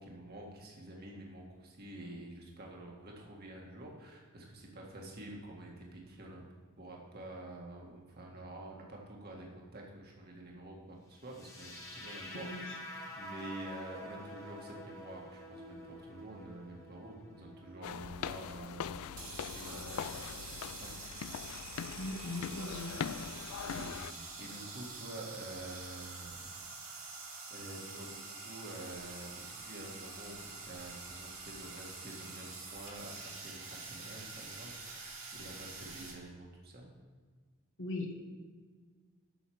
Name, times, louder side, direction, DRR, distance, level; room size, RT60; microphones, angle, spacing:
voice 1, 0.0-6.4 6.8-21.0 21.6-22.0 23.5-26.5 27.5-28.2 28.4-36.9, right 1 dB, 50° right, -1 dB, 1.9 m, -48 dB
sound 1, 11.3-19.3, left 1 dB, 15° left, 1.6 m, -49 dB
voice 2, 12.3-12.8 22.0-23.0 37.8-38.2, left 2 dB, 65° left, 1 dB, 1.6 m, -39 dB
sound 2, 17.8-24.1, left 8 dB, 85° left, 0.4 m, -42 dB
sound 3, 19.1-36.1, right 3 dB, 75° right, 2.5 m, -46 dB
8.0 x 6.4 x 7.8 m, 1.5 s
head